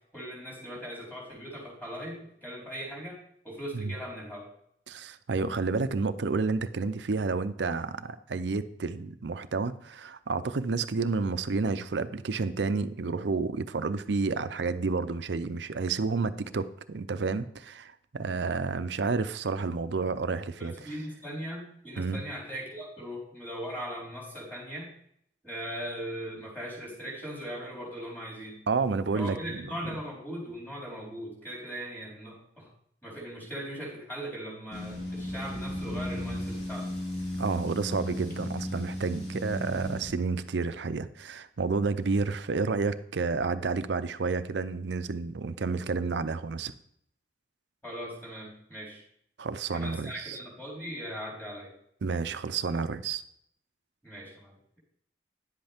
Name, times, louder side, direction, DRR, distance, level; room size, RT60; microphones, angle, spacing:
voice 1, 0.1-3.2 3.4-4.5 20.6-24.9 25.4-28.6 29.1-32.7 33.0-36.9 47.8-49.0 49.7-51.7 54.0-54.8, equal, 10° left, -4 dB, 4.2 m, -39 dB
voice 2, 4.9-20.7 22.0-22.3 28.7-29.7 37.4-46.7 49.4-50.4 52.0-53.2, right 4 dB, 70° right, 12 dB, 0.6 m, -30 dB
sound 1, 34.7-40.1, equal, 60° left, 3.4 m, -35 dB
10.5 x 7.9 x 3.5 m, 0.69 s
head